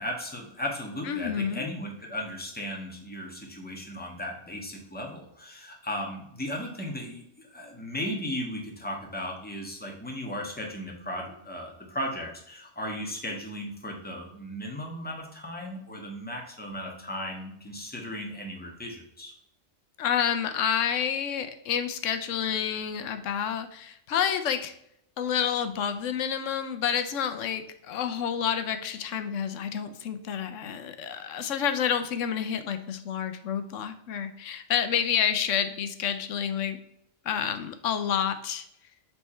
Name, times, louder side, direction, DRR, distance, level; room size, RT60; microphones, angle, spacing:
voice 1, 0.0-19.3, equal, 10° left, 1 dB, 1.2 m, -36 dB
voice 2, 1.1-1.7 20.0-24.7 25.2-36.8 37.2-38.6, left 8 dB, 85° left, 9 dB, 1.0 m, -29 dB
7.2 x 3.5 x 4.3 m, 0.75 s
omnidirectional pair, 1.3 m